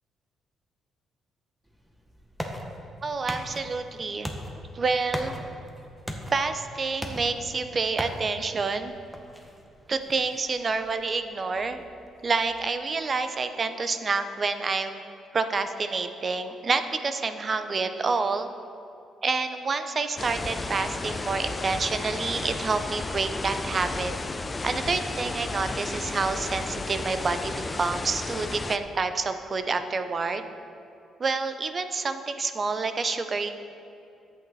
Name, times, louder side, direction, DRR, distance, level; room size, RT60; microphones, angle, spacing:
sound 1, 1.7-13.1, equal, 5° right, 1.1 m, -40 dB
voice 1, 3.0-4.3 4.7-5.3 6.3-8.9 9.9-11.8 12.2-15.0 15.3-18.5 19.2-24.1 24.6-30.5 31.2-33.5, right 4 dB, 35° right, 9 dB, 0.6 m, -28 dB
sound 2, 20.2-28.8, left 3 dB, 25° left, 0.4 m, -33 dB
11.5 x 8.4 x 4.1 m, 2.7 s
cardioid pair, 100°, 0 cm